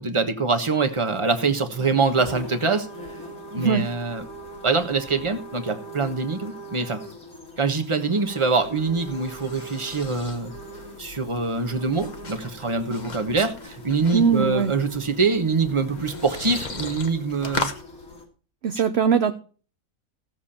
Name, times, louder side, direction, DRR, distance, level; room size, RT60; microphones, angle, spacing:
voice 1, 0.0-2.9 3.5-4.2 4.6-7.0 7.6-10.5 11.0-17.7, right 4 dB, 20° right, 6 dB, 1.3 m, -24 dB
sound 1, 0.8-18.3, equal, 80° left, 3.2 m, -41 dB
voice 2, 3.5-3.9 14.1-14.7 18.6-19.3, right 6 dB, 55° right, 9 dB, 0.9 m, -20 dB
sound 2, 8.2-17.8, left 3 dB, 35° left, 1.2 m, -37 dB
16.5 x 7.2 x 4.3 m, 0.40 s
omnidirectional pair, 1.5 m